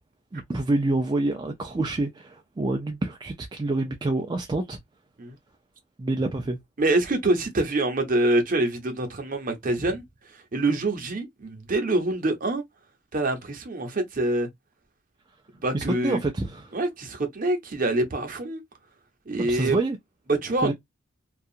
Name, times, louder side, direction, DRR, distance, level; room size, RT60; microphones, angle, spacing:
voice 1, 0.3-4.8 6.0-6.6 15.7-16.8 19.4-20.0 20.6-20.7, right 2 dB, 20° right, 0.3 m, -27 dB
voice 2, 6.8-10.0 10.5-12.6 13.1-14.5 15.6-16.2 16.7-18.6 19.3-19.8 20.3-20.7, right 2 dB, 40° right, 0.7 m, -25 dB
2.7 x 2.3 x 2.3 m
head